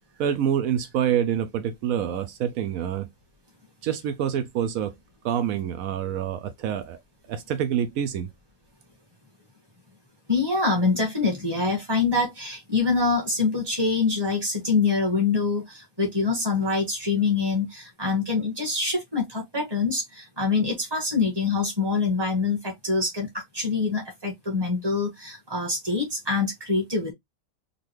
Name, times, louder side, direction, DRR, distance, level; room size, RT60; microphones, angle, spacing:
voice 1, 0.2-3.1 3.8-4.9 5.2-7.0 7.3-8.3, right 9 dB, 80° right, 1.0 m, -26 dB
voice 2, 10.3-27.1, left 4 dB, 20° right, 1.5 m, -25 dB
3.8 x 2.6 x 3.0 m
omnidirectional pair, 1.4 m